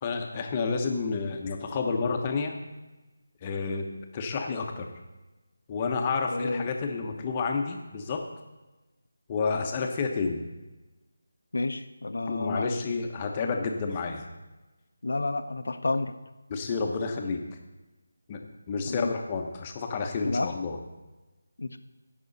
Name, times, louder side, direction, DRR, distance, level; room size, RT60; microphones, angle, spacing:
voice 1, 0.0-2.5 3.4-3.8 4.1-4.9 5.7-8.2 9.3-10.4 12.3-14.2 16.5-17.4 18.3-18.4 18.7-20.8, left 4 dB, 20° left, 3 dB, 1.0 m, -30 dB
voice 2, 6.3-6.7 11.5-12.7 15.0-16.1 18.9-19.1 20.2-20.5 21.6-21.8, left 2 dB, 75° left, 9 dB, 0.8 m, -30 dB
16.5 x 6.1 x 4.1 m, 1.1 s
figure-of-eight pair, 165°, 0 cm